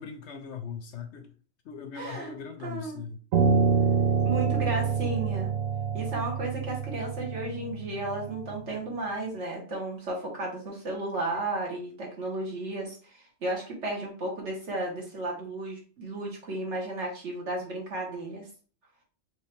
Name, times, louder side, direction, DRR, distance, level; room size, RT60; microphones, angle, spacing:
voice 1, 0.0-1.3 1.6-3.2, left 6 dB, 65° left, 0.8 m, -40 dB
voice 2, 1.9-2.3 2.6-3.0 4.2-5.5 5.9-18.4, right 2 dB, 60° right, 1.7 m, -34 dB
Piano, 3.3-8.6, right 5 dB, 90° right, 1.2 m, -26 dB
4.4 x 3.2 x 3.4 m
omnidirectional pair, 1.4 m